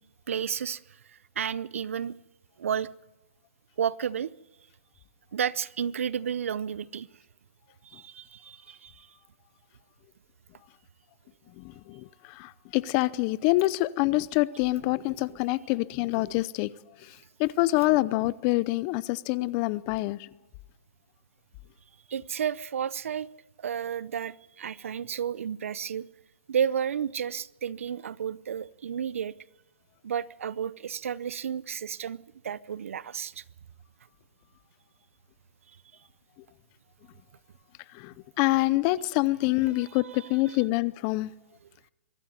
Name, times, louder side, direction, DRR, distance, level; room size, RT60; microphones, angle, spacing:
voice 1, 0.3-0.8 1.4-2.1 2.6-2.9 3.8-4.3 5.3-7.1 7.8-9.1 22.1-23.3 23.6-26.1 26.5-29.3 30.0-32.2 32.4-33.4 39.9-40.6, right 8 dB, 75° right, 20 dB, 0.8 m, -32 dB
voice 2, 11.6-16.7 17.0-20.3 37.9-41.3, left 19 dB, 30° left, 20 dB, 0.6 m, -26 dB
24.0 x 13.0 x 9.4 m, 1.0 s
hypercardioid pair, 150°, 7 cm